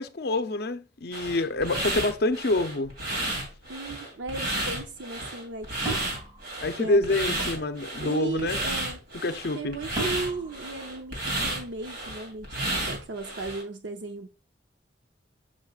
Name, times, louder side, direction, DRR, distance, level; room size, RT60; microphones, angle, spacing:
voice 1, 0.0-2.9 6.6-8.6 9.2-9.7, left 2 dB, 60° left, 0.6 m, -27 dB
sound 1, 1.1-13.6, right 1 dB, 55° right, 2.9 m, -32 dB
voice 2, 3.7-6.0 6.8-7.0 7.5-7.6 8.0-9.0 9.5-14.3, right 3 dB, 90° right, 0.7 m, -36 dB
sound 2, 5.9-7.4 10.0-11.8, right 3 dB, 20° right, 1.9 m, -38 dB
7.4 x 6.3 x 2.4 m
head